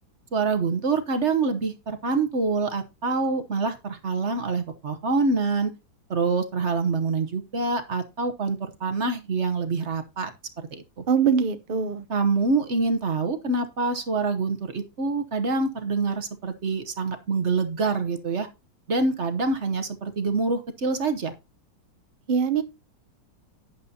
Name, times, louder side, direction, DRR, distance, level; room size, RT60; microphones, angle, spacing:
voice 1, 0.3-5.7 6.1-10.3 10.6-11.0 12.1-18.5 18.9-21.3, right 4 dB, 45° right, 1.0 m, -26 dB
voice 2, 11.1-12.0 22.3-22.6, right 6 dB, 70° right, 0.5 m, -22 dB
11.0 x 9.4 x 2.8 m
omnidirectional pair, 2.1 m